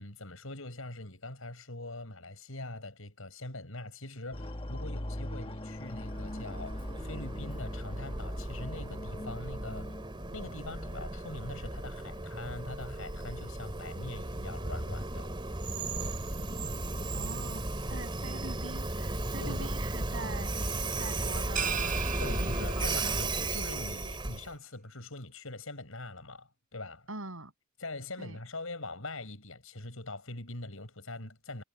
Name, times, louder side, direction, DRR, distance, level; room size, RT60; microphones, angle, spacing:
voice 1, 0.0-9.9 10.3-15.3 19.4-19.7 22.2-27.1 27.8-31.6, left 2 dB, 80° left, 6.5 m, -43 dB
sound 1, 4.3-12.7 12.9-13.0, left 1 dB, 25° left, 1.2 m, -41 dB
Train, 5.8-24.5, right 2 dB, 25° right, 3.0 m, -35 dB
voice 2, 17.1-20.6 21.0-22.0 22.4-23.2 27.1-27.5 28.2-28.4, right 2 dB, 80° right, 7.9 m, -43 dB
sound 2, 21.6-23.3, right 8 dB, 40° right, 3.7 m, -36 dB
head